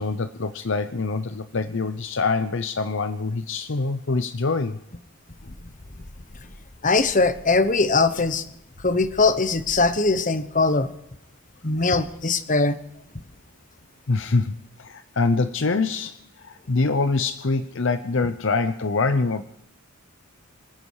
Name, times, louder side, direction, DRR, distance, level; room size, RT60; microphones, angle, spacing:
voice 1, 0.0-4.8 14.1-19.4, left 3 dB, 60° left, 11 dB, 0.7 m, -25 dB
voice 2, 6.8-8.5 8.8-10.9 11.6-12.8, left 3 dB, 35° left, 11 dB, 1.1 m, -21 dB
25.5 x 10.0 x 4.8 m, 0.78 s
head